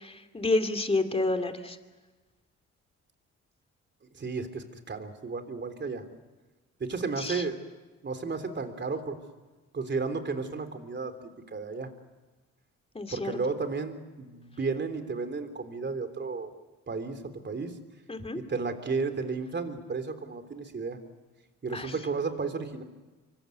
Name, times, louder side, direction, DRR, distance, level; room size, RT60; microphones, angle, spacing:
voice 1, 0.0-1.8 7.2-7.4 12.9-13.3 18.1-18.4 21.7-21.9, left 2 dB, 20° left, 6 dB, 2.7 m, -29 dB
voice 2, 4.1-6.0 6.8-7.7 8.0-9.2 9.7-11.1 11.5-11.9 13.1-16.5 16.9-17.7 18.3-21.0 21.6-22.8, right 4 dB, 35° right, 9 dB, 3.4 m, -33 dB
25.5 x 24.0 x 8.1 m, 1.2 s
cardioid pair, 90°, 30 cm